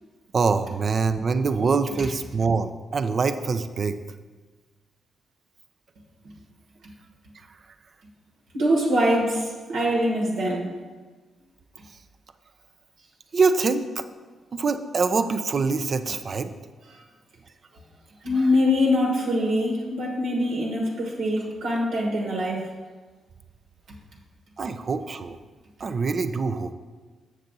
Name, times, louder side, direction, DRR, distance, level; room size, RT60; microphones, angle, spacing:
voice 1, 0.3-4.0 13.3-14.0 14.5-16.5 24.6-25.4 25.8-26.7, right 4 dB, 50° right, 10 dB, 0.5 m, -24 dB
voice 2, 8.5-10.7 18.2-22.7, left 1 dB, 80° right, -2 dB, 1.5 m, -23 dB
7.4 x 6.6 x 4.0 m, 1.4 s
cardioid pair, 75°, 0 cm